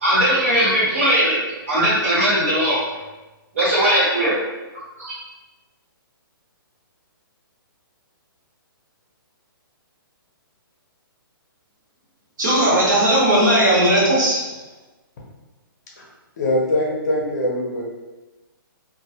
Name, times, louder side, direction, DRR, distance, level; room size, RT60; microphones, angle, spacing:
voice 1, 0.0-1.4 1.7-2.8 3.6-4.3 5.0-5.1, equal, 35° right, -6 dB, 0.6 m, -18 dB
voice 2, 12.4-14.4, right 1 dB, 55° right, -6 dB, 1.0 m, -17 dB
voice 3, 16.4-17.8, left 1 dB, 50° left, -2 dB, 0.6 m, -22 dB
2.2 x 2.2 x 2.7 m, 1.1 s
hypercardioid pair, 170°, 12 cm